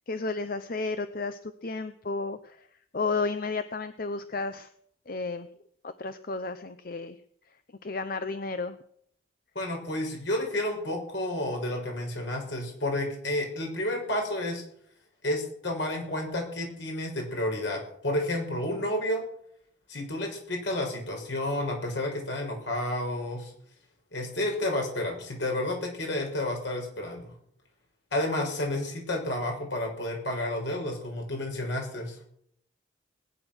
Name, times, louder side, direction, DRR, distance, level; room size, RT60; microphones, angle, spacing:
voice 1, 0.1-2.7 2.9-4.7 5.1-5.5 6.0-7.2 7.8-8.8, left 3 dB, 45° left, 11 dB, 0.7 m, -32 dB
voice 2, 9.5-14.6 15.2-19.2 19.9-23.5 24.1-27.3 28.1-32.2, left 1 dB, 70° left, 1 dB, 6.1 m, -31 dB
20.0 x 10.0 x 6.4 m, 0.67 s
head